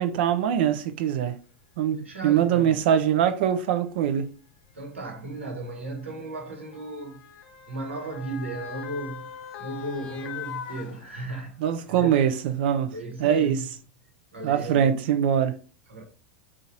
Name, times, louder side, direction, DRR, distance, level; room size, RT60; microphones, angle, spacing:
voice 1, 0.0-1.4 1.8-4.3 11.6-12.9 13.2-13.6 14.4-15.6, right 9 dB, 60° right, 0.5 m, -23 dB
Motor vehicle (road) / Siren, 1.6-1.7 2.7-2.9 4.0-11.6 12.0-12.1, left 9 dB, 55° left, 0.7 m, -42 dB
voice 2, 2.0-2.9 4.7-7.3 7.7-12.2 12.9-13.8 14.3-15.0 15.9-16.0, right 2 dB, 80° right, 1.2 m, -36 dB
3.9 x 2.5 x 4.2 m
figure-of-eight pair, 90°, 6 cm